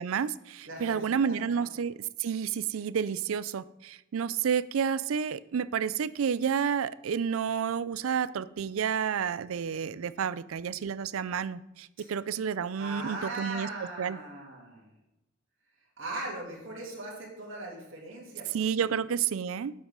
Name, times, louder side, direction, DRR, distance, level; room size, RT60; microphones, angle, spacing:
voice 1, 0.0-13.7 14.0-14.2 18.5-19.8, right 7 dB, 90° right, 18 dB, 0.4 m, -30 dB
voice 2, 0.6-1.0 1.2-1.6 12.8-14.8 16.0-18.5 18.8-18.9, right 2 dB, 65° right, -3 dB, 2.9 m, -39 dB
10.5 x 7.9 x 3.8 m, 0.91 s
head